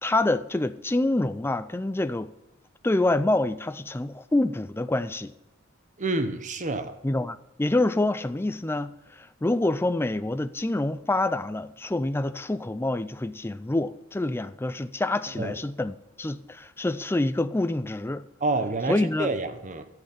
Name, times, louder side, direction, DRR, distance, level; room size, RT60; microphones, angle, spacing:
voice 1, 0.0-2.3 2.8-5.3 7.0-18.2 18.9-19.3, left 2 dB, 10° left, 0.4 m, -26 dB
voice 2, 6.0-7.0 15.3-15.6 18.4-19.9, right 2 dB, 35° right, 0.8 m, -28 dB
12.5 x 7.9 x 5.6 m
head